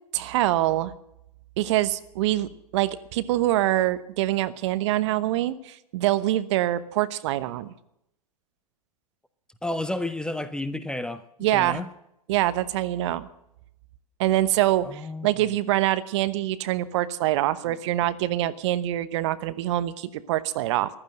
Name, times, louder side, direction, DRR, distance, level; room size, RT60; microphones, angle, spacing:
voice 1, 0.1-0.9 1.6-7.7 11.4-11.8 12.3-13.3 14.2-20.9, right 14 dB, 50° right, 1.0 m, -25 dB
voice 2, 9.6-11.2 11.5-11.9 14.8-15.3 17.7-17.8, left 1 dB, 5° left, 0.7 m, -31 dB
15.0 x 12.0 x 7.7 m
figure-of-eight pair, 100°, 19 cm